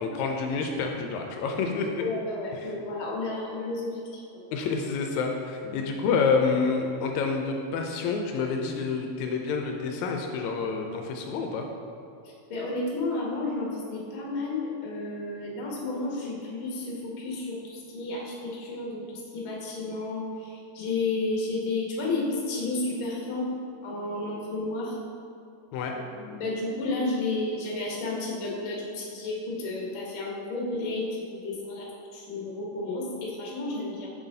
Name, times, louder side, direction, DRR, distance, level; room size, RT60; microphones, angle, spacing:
voice 1, 0.0-1.9 2.6-2.7 4.5-11.7 25.7-25.9, left 5 dB, 85° left, 2 dB, 1.9 m, -28 dB
voice 2, 2.0-4.2 5.6-5.8 12.5-23.5 23.8-25.0 26.2-34.1, left 2 dB, 55° left, -3 dB, 1.7 m, -32 dB
6.9 x 6.1 x 2.7 m, 2.6 s
omnidirectional pair, 3.3 m